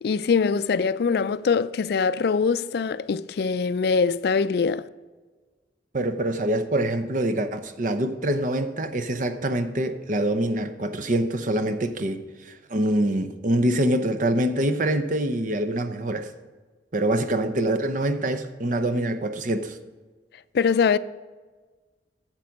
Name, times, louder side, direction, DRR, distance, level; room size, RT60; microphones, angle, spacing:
voice 1, 0.0-4.9 20.5-21.0, left 5 dB, 60° left, 0.3 m, -23 dB
voice 2, 5.9-16.3 16.9-19.8, right 1 dB, 45° right, 0.7 m, -25 dB
10.5 x 7.5 x 5.2 m
head